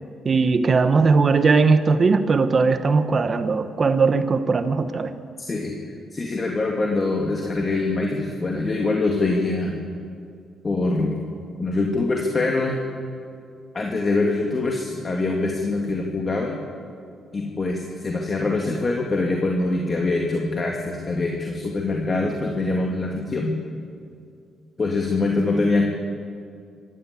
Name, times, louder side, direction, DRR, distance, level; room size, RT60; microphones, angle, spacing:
voice 1, 0.2-5.1, right 4 dB, 40° right, 10 dB, 1.2 m, -19 dB
voice 2, 5.4-5.7 6.1-9.8 10.6-11.2 11.6-12.8 13.7-16.6 17.3-23.5 24.8-25.9, left 3 dB, 35° left, 0 dB, 2.5 m, -24 dB
26.0 x 13.0 x 8.4 m, 2.3 s
cardioid pair, 90°, 0 cm